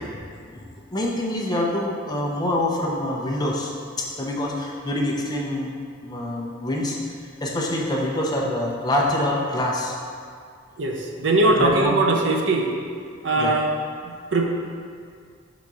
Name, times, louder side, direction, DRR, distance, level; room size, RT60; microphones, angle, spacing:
voice 1, 0.9-3.7 4.0-5.8 6.0-7.1 7.4-9.9 11.6-11.9 13.4-13.5, left 1 dB, 20° left, -2 dB, 0.7 m, -25 dB
voice 2, 10.8-12.8 13.2-13.7 14.0-14.5, right 2 dB, 65° right, 1 dB, 0.7 m, -21 dB
5.9 x 4.0 x 4.8 m, 2.2 s
head